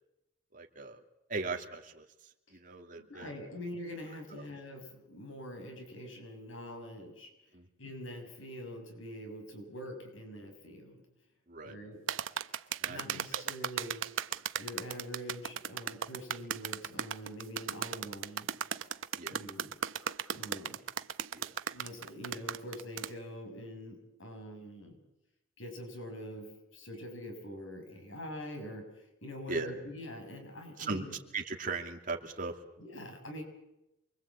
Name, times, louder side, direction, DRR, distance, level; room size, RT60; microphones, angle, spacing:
voice 1, 0.5-1.0 1.3-2.1 2.5-3.3 4.4-4.5 7.5-7.7 11.5-11.7 12.8-13.5 19.1-19.4 21.3-21.5 29.5-29.7 30.8-31.0 31.3-32.5, right 3 dB, 40° right, 2 dB, 2.8 m, -38 dB
voice 2, 3.0-7.3 7.8-11.0 11.6-12.0 12.8-14.0 14.6-18.5 19.2-19.7 20.3-20.8 21.7-25.0 25.6-31.2 32.8-33.4, equal, 80° left, 4 dB, 6.5 m, -44 dB
sound 1, 12.1-23.1, right 8 dB, 85° right, 1.0 m, -36 dB
28.5 x 23.0 x 8.5 m, 0.89 s
head